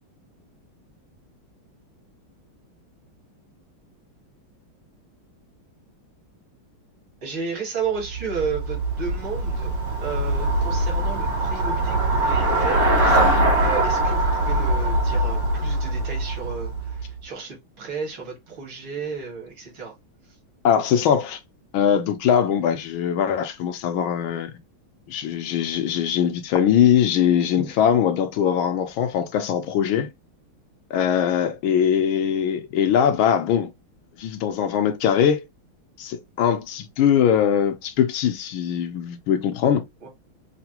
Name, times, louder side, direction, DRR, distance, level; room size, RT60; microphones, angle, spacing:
voice 1, 7.2-9.7 10.0-13.3 13.6-19.9 40.0-40.1, right 5 dB, 70° right, 2.7 m, -33 dB
Traffic noise roadway noise / Bicycle, 8.0-17.2, right 1 dB, 85° right, 3.3 m, -22 dB
voice 2, 20.6-21.4 21.7-24.5 25.1-30.1 30.9-33.7 34.2-35.4 36.0-39.8, left 8 dB, 75° left, 1.4 m, -21 dB
5.8 x 2.1 x 2.8 m
omnidirectional pair, 2.3 m